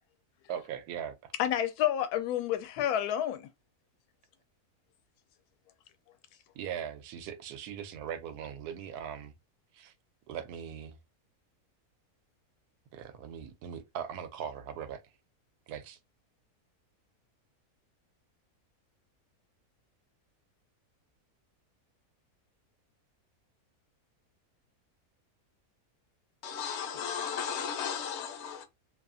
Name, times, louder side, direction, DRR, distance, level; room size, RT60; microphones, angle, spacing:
voice 1, 0.5-1.3 6.5-9.3 9.7-9.9 10.3-11.0 12.9-15.0 15.7-16.0, right 8 dB, 90° right, 1.1 m, -40 dB
voice 2, 1.4-3.5, left 11 dB, 80° left, 1.1 m, -29 dB
voice 3, 26.4-28.6, left 7 dB, 60° left, 0.8 m, -35 dB
2.8 x 2.3 x 2.5 m
omnidirectional pair, 1.6 m